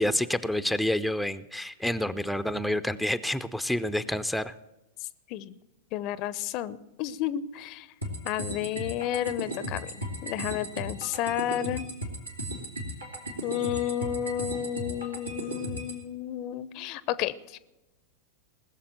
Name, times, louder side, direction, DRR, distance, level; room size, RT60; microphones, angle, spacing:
voice 1, 0.0-4.5, left 1 dB, ahead, 10 dB, 0.5 m, -28 dB
voice 2, 5.9-7.9 8.2-9.9 10.2-11.9 13.4-17.6, left 11 dB, 40° left, 18 dB, 0.6 m, -31 dB
sound 1, 8.0-16.0, right 1 dB, 90° right, 2.6 m, -36 dB
19.5 x 7.1 x 7.5 m, 1.0 s
figure-of-eight pair, 90°, 0 cm